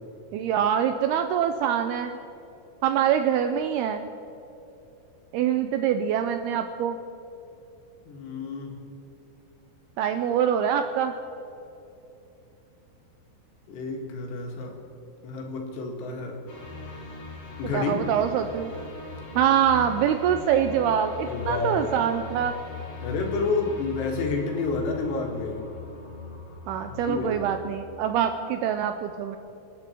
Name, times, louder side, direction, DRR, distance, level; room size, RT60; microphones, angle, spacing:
voice 1, 0.3-2.2 2.8-4.0 5.3-7.0 10.0-11.1 17.7-18.7 19.4-22.6 26.7-29.4, right 9 dB, 85° right, 8 dB, 2.3 m, -24 dB
voice 2, 8.1-8.8 13.7-14.8 15.2-16.4 17.6-18.1 21.2-22.1 23.0-25.6 26.9-27.4, left 3 dB, 75° left, 1 dB, 4.0 m, -30 dB
sound 1, 16.5-27.7, left 4 dB, 40° left, 2.8 m, -40 dB
27.5 x 10.5 x 4.5 m, 2.9 s
omnidirectional pair, 5.1 m